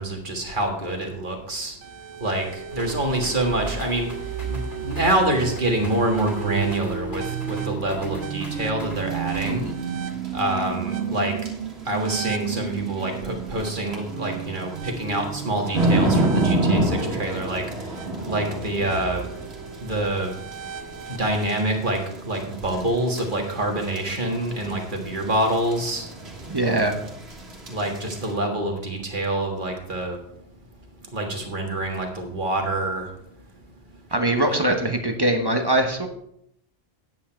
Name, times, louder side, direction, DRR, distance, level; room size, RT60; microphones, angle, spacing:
voice 1, 0.0-1.7 2.2-2.5 2.7-4.1 4.5-9.6 10.3-11.3 11.9-17.6 18.2-19.2 19.8-20.3 21.1-26.1 27.7-30.2 31.1-33.0 34.5-34.7, right 1 dB, 45° right, 2 dB, 1.7 m, -26 dB
sound 1, 1.8-21.6, right 8 dB, 85° right, 1.0 m, -33 dB
sound 2, 2.7-9.7, left 1 dB, 45° left, 2.8 m, -42 dB
sound 3, 9.0-28.3, right 1 dB, 65° right, 2.2 m, -30 dB
voice 2, 26.5-26.9 34.1-36.1, right 1 dB, 25° right, 5 dB, 0.9 m, -22 dB
9.5 x 8.2 x 4.4 m, 0.74 s
omnidirectional pair, 1.1 m